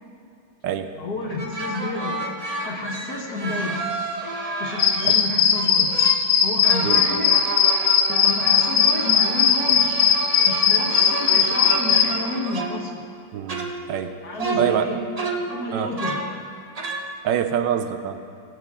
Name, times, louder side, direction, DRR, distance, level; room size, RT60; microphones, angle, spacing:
voice 1, 0.9-2.2 2.6-4.1 4.6-5.9 6.4-7.4 8.1-10.1 10.4-12.9 14.2-15.0 15.5-16.2, left 2 dB, 60° left, -1 dB, 1.7 m, -30 dB
sound 1, 1.4-5.2 5.5-6.3 6.6-13.2 13.5-14.1 14.4-16.4 16.7-17.1, right 2 dB, 35° right, 0.6 m, -31 dB
sound 2, 4.8-12.1, left 7 dB, 80° left, 1.6 m, -18 dB
voice 2, 13.3-14.1 14.6-14.9 15.7-15.9 17.2-18.2, right 9 dB, 80° right, 9 dB, 1.4 m, -25 dB
18.5 x 9.0 x 3.6 m, 2.6 s
omnidirectional pair, 2.0 m